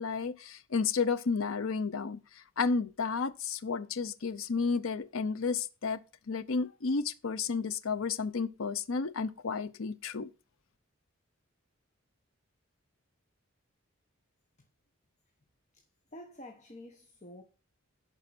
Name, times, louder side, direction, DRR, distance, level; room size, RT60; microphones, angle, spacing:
voice 1, 0.0-2.2 2.6-6.0 6.3-10.3, left 5 dB, 70° left, 0.6 m, -32 dB
voice 2, 16.1-17.4, left 1 dB, 35° left, 1.5 m, -48 dB
11.5 x 4.7 x 6.0 m
head